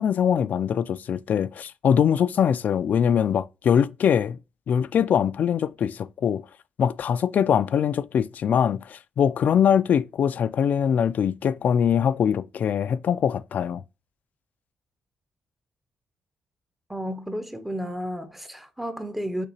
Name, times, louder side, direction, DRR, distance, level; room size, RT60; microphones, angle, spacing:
voice 1, 0.0-4.4 4.7-6.4 6.8-13.8, left 8 dB, 60° left, 0.3 m, -22 dB
voice 2, 16.9-19.5, equal, 5° right, 0.6 m, -32 dB
6.6 x 2.8 x 2.8 m
cardioid pair, 95°, 3 cm